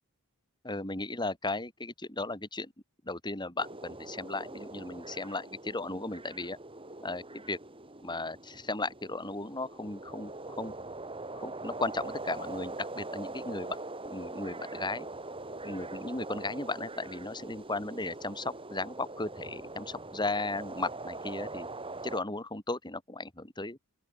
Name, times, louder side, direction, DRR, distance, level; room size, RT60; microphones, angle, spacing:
voice 1, 0.6-2.7 3.0-6.6 7.0-7.6 8.0-10.3 10.6-10.7 11.3-13.8 14.0-15.1 15.6-21.7 22.0-23.8, left 2 dB, 20° left, 3.7 m, -36 dB
sound 1, 3.6-22.2, right 2 dB, 25° right, 6.6 m, -42 dB
open air
head